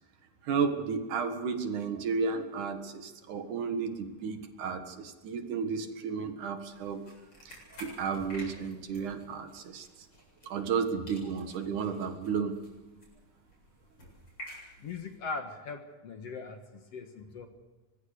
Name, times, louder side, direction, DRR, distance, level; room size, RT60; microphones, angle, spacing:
voice 1, 0.5-7.0 7.5-9.9 10.5-12.6, right 5 dB, 65° right, 7 dB, 3.0 m, -33 dB
sound 1, 6.7-10.8 11.1-15.2, equal, 30° left, 8.3 m, -51 dB
voice 2, 14.8-16.6 16.9-17.5, left 4 dB, 55° left, 6 dB, 2.3 m, -39 dB
24.0 x 21.5 x 6.7 m, 1.2 s
omnidirectional pair, 3.9 m